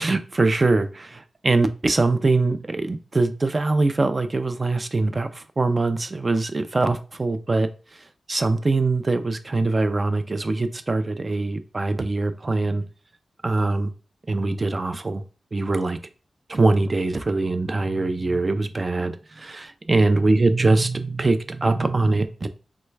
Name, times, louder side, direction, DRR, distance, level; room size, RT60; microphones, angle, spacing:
voice 1, 0.0-12.8 13.4-13.9 14.3-15.2 15.5-16.0 16.5-22.5, right 3 dB, 35° right, 0.3 m, -23 dB
3.1 x 2.2 x 3.2 m
wide cardioid pair, 110°, 0 cm